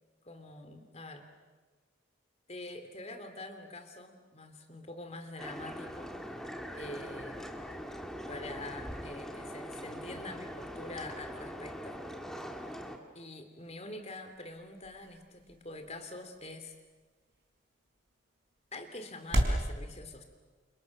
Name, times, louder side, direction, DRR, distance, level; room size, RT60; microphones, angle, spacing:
voice 1, 0.2-1.3 2.5-6.1 6.7-7.4 8.3-12.0 13.1-16.7 18.7-20.2, left 2 dB, 30° left, 7 dB, 2.9 m, -45 dB
sound 1, 5.4-13.0, equal, ahead, 2.1 m, -42 dB
sound 2, 13.4-19.7, right 1 dB, 55° right, 4.8 m, -38 dB
29.0 x 28.5 x 6.6 m, 1.3 s
head